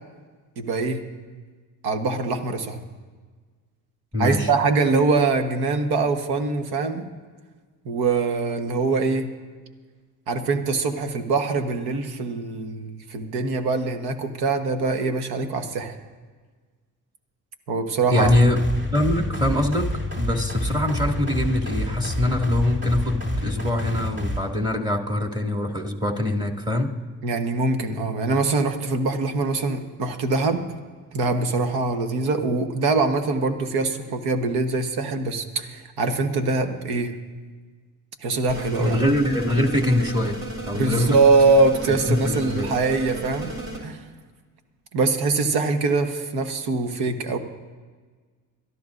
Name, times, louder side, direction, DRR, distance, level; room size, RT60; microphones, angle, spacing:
voice 1, 0.6-1.0 1.8-2.8 4.2-7.1 7.8-9.3 10.3-16.0 17.7-18.3 27.2-30.6 31.1-37.1 38.2-39.0 40.7-43.5 43.8-44.0 44.9-47.4, right 3 dB, 80° right, 7 dB, 1.3 m, -23 dB
voice 2, 4.1-4.5 18.1-18.6 18.9-19.9 20.2-26.9 38.8-40.4 40.7-41.2 41.9-42.7, left 1 dB, 10° right, 2 dB, 2.3 m, -23 dB
sound 1, 18.2-24.4, left 1 dB, 30° right, 3.4 m, -28 dB
sound 2, 38.5-43.8, right 1 dB, 45° right, 3.3 m, -34 dB
23.0 x 13.0 x 2.6 m, 1.4 s
supercardioid pair, 75°, 37 cm